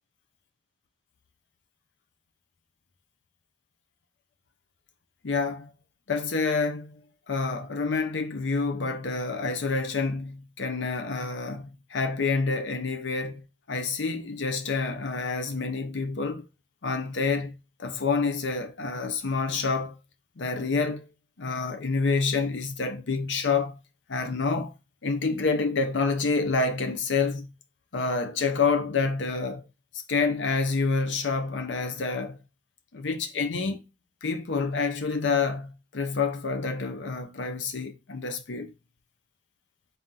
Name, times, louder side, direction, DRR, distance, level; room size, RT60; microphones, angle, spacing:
voice 1, 5.2-5.7 6.1-7.0 7.3-16.4 16.8-20.0 20.4-21.1 21.4-23.8 24.1-24.7 25.0-27.5 27.9-29.6 29.9-32.4 32.9-33.8 34.2-38.7, left 4 dB, 80° left, 0.7 m, -28 dB
4.2 x 2.7 x 3.7 m
head